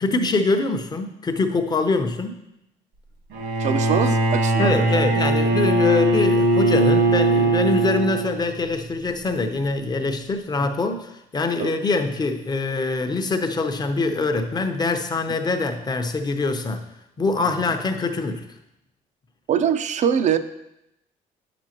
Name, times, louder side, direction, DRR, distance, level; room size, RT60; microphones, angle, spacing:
voice 1, 0.0-2.4 4.6-16.8 17.2-18.5, left 3 dB, 25° left, 6 dB, 0.7 m, -24 dB
Bowed string instrument, 3.3-8.6, right 2 dB, 85° right, 1.6 m, -20 dB
voice 2, 3.6-5.0 10.6-10.7 11.6-11.7 19.5-20.4, right 8 dB, 45° right, 11 dB, 0.5 m, -23 dB
8.3 x 6.1 x 2.9 m, 0.85 s
cardioid pair, 110°, 17 cm